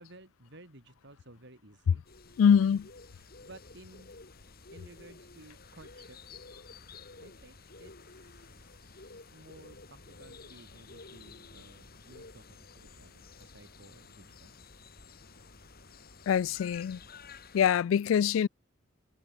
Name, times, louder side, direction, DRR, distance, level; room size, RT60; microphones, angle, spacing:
voice 1, 0.0-2.4 3.1-4.2 4.7-6.2 7.2-14.5, right 1 dB, 60° right, 6.5 m, -55 dB
sound 1, 2.0-17.8, left 4 dB, 50° left, 3.2 m, -52 dB
voice 2, 2.4-2.8 16.3-17.0 17.5-18.5, left 8 dB, 80° left, 0.3 m, -24 dB
head